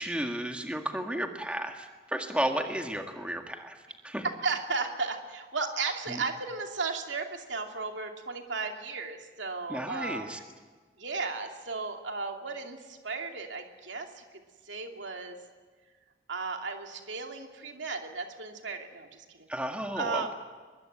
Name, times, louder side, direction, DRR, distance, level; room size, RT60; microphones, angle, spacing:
voice 1, 0.0-4.3 6.1-6.2 9.7-10.4 19.5-20.3, right 1 dB, 5° right, 4 dB, 1.8 m, -33 dB
voice 2, 4.4-10.3 11.0-14.2 14.7-15.4 16.3-19.5 20.0-20.3, right 4 dB, 90° right, 4 dB, 2.7 m, -35 dB
23.5 x 22.0 x 9.2 m, 1.4 s
head